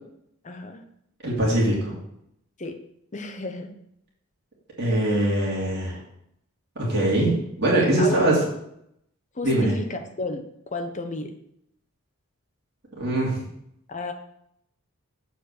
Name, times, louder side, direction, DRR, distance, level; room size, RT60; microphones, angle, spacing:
voice 1, 0.4-0.8 2.6-2.8 3.1-3.7 8.0-8.3 9.3-10.4 10.7-11.3 13.9-14.1, left 2 dB, 35° left, 6 dB, 0.8 m, -32 dB
voice 2, 1.2-1.9 4.8-6.0 6.8-8.4 9.4-9.7 13.0-13.4, right 1 dB, 50° right, -5 dB, 2.3 m, -22 dB
7.1 x 4.2 x 6.4 m, 0.73 s
head